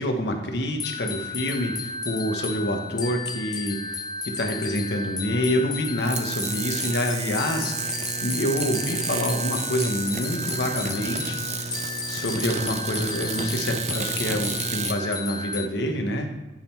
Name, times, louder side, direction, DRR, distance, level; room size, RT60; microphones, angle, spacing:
voice 1, 0.0-3.8 4.2-11.7 12.1-16.3, left 1 dB, 65° left, 4 dB, 1.0 m, -27 dB
sound 1, 0.8-15.7, left 4 dB, 20° left, 0.4 m, -33 dB
sound 2, 6.0-15.0, right 5 dB, 40° right, 0.5 m, -31 dB
9.6 x 3.7 x 4.3 m, 1.1 s
head